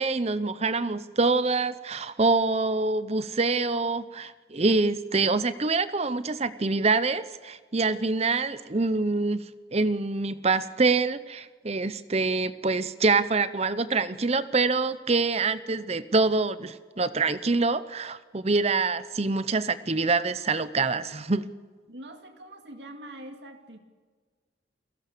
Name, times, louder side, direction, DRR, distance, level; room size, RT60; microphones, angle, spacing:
voice 1, 0.0-9.5 9.7-21.5, right 3 dB, 30° right, 14 dB, 0.7 m, -25 dB
voice 2, 21.9-23.8, right 1 dB, 60° right, 5 dB, 2.3 m, -44 dB
29.5 x 17.5 x 6.8 m, 1.5 s
head